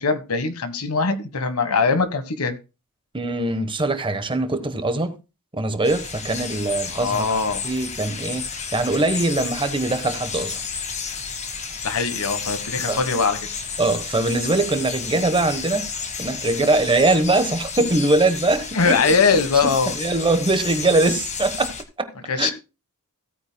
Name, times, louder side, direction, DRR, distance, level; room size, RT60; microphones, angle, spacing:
voice 1, 0.0-2.6 6.9-7.7 11.8-13.6 18.7-19.9 22.3-22.5, left 4 dB, 70° left, 1.3 m, -21 dB
voice 2, 3.1-5.1 5.5-10.6 12.9-13.0 13.8-15.9 16.2-19.1 19.9-22.1 22.4-22.5, right 2 dB, 25° right, 1.1 m, -22 dB
sound 1, 5.8-21.8, left 5 dB, 30° left, 1.3 m, -32 dB
16.5 x 9.0 x 2.2 m
head